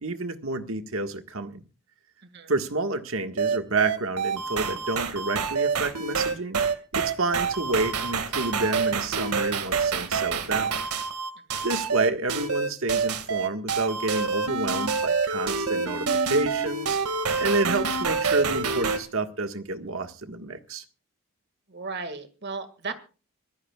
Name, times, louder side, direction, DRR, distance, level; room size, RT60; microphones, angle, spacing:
voice 1, 0.0-1.6 2.5-6.6 6.9-10.8 11.6-17.0 17.4-20.8, right 3 dB, 65° right, 7 dB, 1.6 m, -29 dB
sound 1, 3.4-19.0, right 5 dB, 90° right, 2.0 m, -27 dB
voice 2, 21.7-22.9, right 4 dB, 50° right, 10 dB, 2.0 m, -35 dB
25.0 x 15.5 x 2.4 m, 0.35 s
head